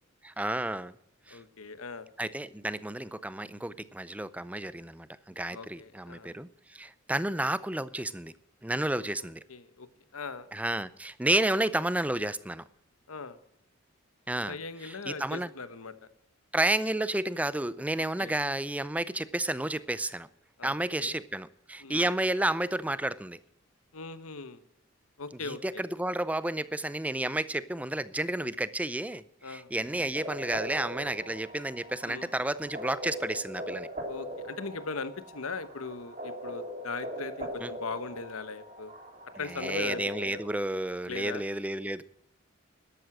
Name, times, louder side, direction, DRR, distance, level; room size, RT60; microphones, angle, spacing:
voice 1, 0.2-0.9 1.3-1.4 2.2-8.3 8.6-9.4 10.5-12.6 14.3-14.6 14.8-15.5 16.5-20.3 20.6-23.4 25.4-33.9 37.6-37.7 39.6-42.0, right 1 dB, 5° right, 16 dB, 0.5 m, -31 dB
voice 2, 1.3-2.1 5.5-6.3 9.0-9.9 10.1-10.5 13.1-13.4 14.5-15.9 18.0-18.4 20.6-21.1 21.8-22.1 23.9-24.6 25.2-25.8 29.4-29.7 32.1-32.3 34.1-38.9 39.4-40.4 41.1-41.4, left 4 dB, 85° left, 13 dB, 1.1 m, -39 dB
sound 1, 30.1-40.5, equal, 35° right, 3.0 m, -41 dB
12.5 x 11.5 x 6.1 m, 0.74 s
head